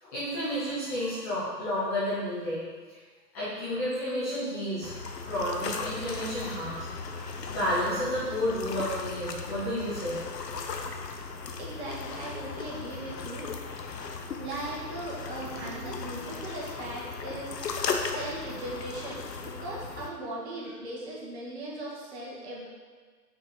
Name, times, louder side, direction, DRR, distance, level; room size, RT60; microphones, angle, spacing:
voice 1, 0.0-2.6 2.9-3.0 3.3-4.9 5.2-6.9 7.1-10.2 15.4-15.7, equal, 10° left, -14 dB, 0.7 m, -31 dB
sound 1, 4.8-20.1, left 4 dB, 70° left, 0.9 m, -37 dB
voice 2, 11.6-13.5 14.4-17.5 18.1-22.7, right 1 dB, 40° right, -4 dB, 1.7 m, -38 dB
5.9 x 4.1 x 4.8 m, 1.5 s
hypercardioid pair, 145°, 50 cm